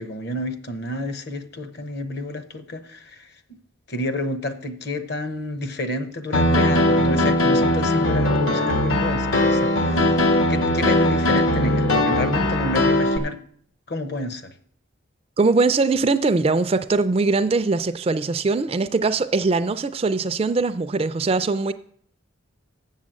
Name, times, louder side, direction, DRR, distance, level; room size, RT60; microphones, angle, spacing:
voice 1, 0.0-3.3 3.9-10.2 10.5-13.4 13.9-14.5, left 1 dB, 50° left, 0.9 m, -30 dB
Piano, 6.3-13.2, left 1 dB, 70° left, 1.3 m, -20 dB
voice 2, 15.4-21.7, right 3 dB, 30° right, 0.3 m, -21 dB
7.4 x 7.3 x 7.6 m
head